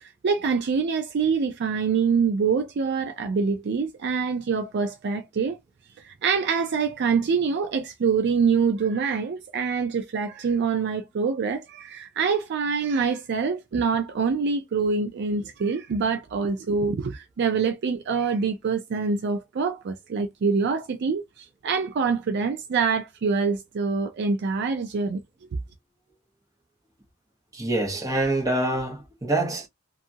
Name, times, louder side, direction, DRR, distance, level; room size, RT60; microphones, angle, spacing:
voice 1, 0.0-5.6 6.0-25.2, right 5 dB, 55° right, 0.4 m, -25 dB
voice 2, 27.5-29.7, right 2 dB, 15° right, 1.0 m, -25 dB
2.6 x 2.4 x 2.7 m
head